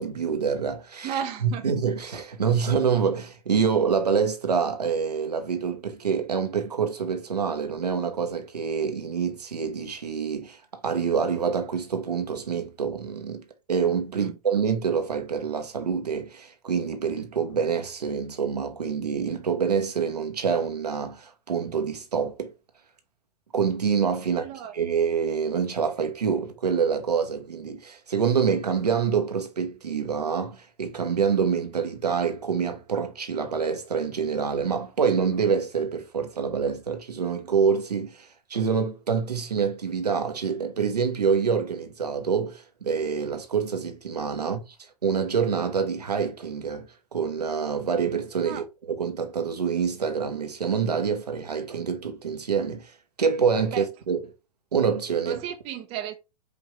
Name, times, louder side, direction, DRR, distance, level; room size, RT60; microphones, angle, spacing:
voice 1, 0.0-13.4 13.7-22.5 23.5-44.6 45.0-46.9 47.1-52.9 53.2-54.2 54.7-55.4, right 6 dB, 80° right, 0.9 m, -26 dB
voice 2, 1.0-1.6 14.1-14.3 24.3-24.7 44.4-44.5 48.4-48.6 53.7-53.9 55.3-56.2, right 9 dB, 30° right, 0.6 m, -34 dB
5.0 x 2.6 x 3.0 m
figure-of-eight pair, 105°, 20 cm